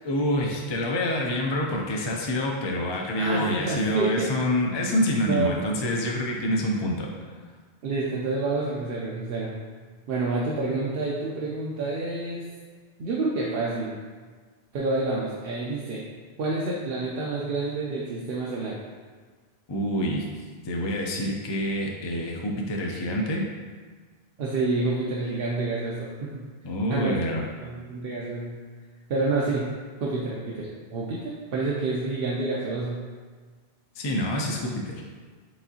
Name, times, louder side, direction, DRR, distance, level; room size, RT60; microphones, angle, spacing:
voice 1, 0.0-7.1 19.7-20.3 20.6-23.5 26.6-27.4 34.0-35.0, left 1 dB, 45° left, 0 dB, 0.3 m, -27 dB
voice 2, 3.2-4.3 5.2-5.5 7.8-9.5 10.1-12.4 13.0-13.9 14.7-16.0 16.4-18.7 24.4-26.4 26.9-27.2 27.6-28.6 29.1-29.7 30.0-33.0, right 3 dB, 65° right, -5 dB, 0.8 m, -28 dB
4.8 x 3.6 x 2.7 m, 1.5 s
omnidirectional pair, 1.1 m